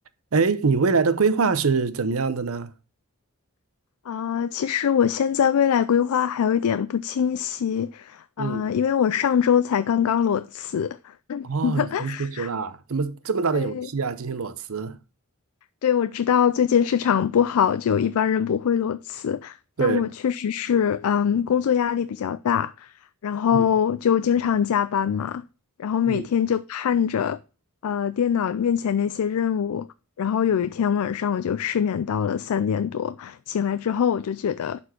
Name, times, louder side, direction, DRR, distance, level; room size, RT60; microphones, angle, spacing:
voice 1, 0.3-2.7 8.4-8.7 11.4-15.0 19.8-20.0 23.5-23.6 26.1-26.3, right 4 dB, 70° right, 0.7 m, -24 dB
voice 2, 4.1-12.5 13.5-13.9 15.8-22.9 23.2-25.4 25.8-27.4 27.8-29.9 30.2-34.8, left 8 dB, 80° left, 0.4 m, -23 dB
11.0 x 4.3 x 4.3 m
head